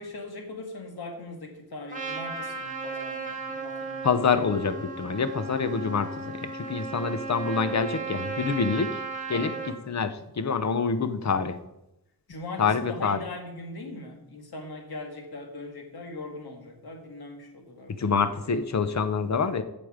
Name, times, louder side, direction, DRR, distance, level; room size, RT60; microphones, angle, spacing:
voice 1, 0.0-4.1 9.3-9.5 12.3-18.2, left 2 dB, 90° left, 3 dB, 2.0 m, -40 dB
Trumpet, 1.9-9.8, right 4 dB, 20° right, 1.5 m, -35 dB
voice 2, 4.0-9.0 9.3-9.5 9.9-11.6 12.6-13.2 18.0-19.6, left 5 dB, 50° left, 10 dB, 0.8 m, -26 dB
15.0 x 5.2 x 4.9 m, 0.89 s
wide cardioid pair, 175°, 36 cm